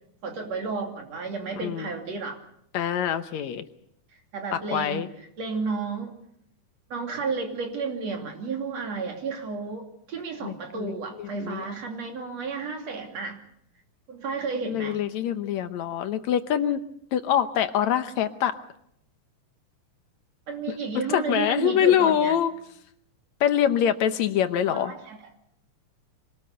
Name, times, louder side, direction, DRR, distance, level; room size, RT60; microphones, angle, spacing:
voice 1, 0.2-2.4 4.3-5.1 5.4-6.1 6.9-13.4 14.1-15.0 20.5-22.3 24.7-25.3, right 4 dB, 60° right, 3 dB, 3.9 m, -32 dB
voice 2, 2.7-3.6 4.5-5.1 10.4-11.7 14.7-16.8 17.1-18.6 20.7-20.8 21.1-22.5 23.4-24.9, left 9 dB, 70° left, 10 dB, 2.2 m, -25 dB
25.0 x 18.5 x 6.8 m, 0.72 s
omnidirectional pair, 3.4 m